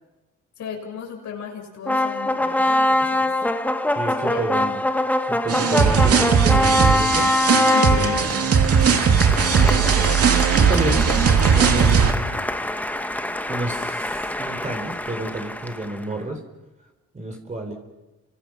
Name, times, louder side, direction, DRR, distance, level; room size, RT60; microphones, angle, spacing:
voice 1, 0.6-3.3 4.2-4.4 7.7-8.3, left 6 dB, 70° left, 2 dB, 7.3 m, -34 dB
sound 1, 1.9-16.0, left 1 dB, 5° left, 1.3 m, -24 dB
voice 2, 4.0-4.8 5.3-7.7 8.2-8.3 9.5-10.2 10.6-11.2 11.5-12.4 13.5-16.4 17.1-17.7, right 1 dB, 25° right, 2 dB, 4.1 m, -30 dB
sound 2, 5.5-12.1, right 6 dB, 50° right, 2.4 m, -18 dB
29.5 x 25.0 x 6.0 m, 1.1 s
cardioid pair, 90°, 30 cm